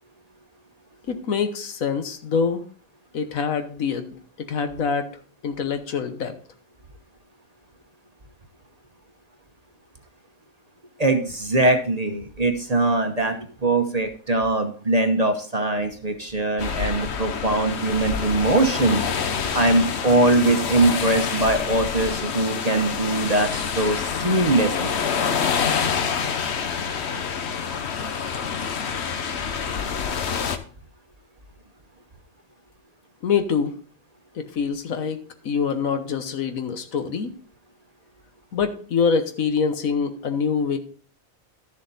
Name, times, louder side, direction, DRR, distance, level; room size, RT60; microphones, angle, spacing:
voice 1, 1.1-2.6 3.1-5.1 5.4-6.3 33.2-33.8 34.3-37.3 38.5-40.8, left 6 dB, 75° left, 8 dB, 1.5 m, -25 dB
voice 2, 11.0-19.0 19.4-24.9, right 2 dB, 30° right, 5 dB, 1.0 m, -22 dB
sound 1, 16.6-30.6, left 6 dB, 55° left, 1.1 m, -27 dB
12.0 x 7.2 x 4.0 m, 0.43 s
omnidirectional pair, 1.4 m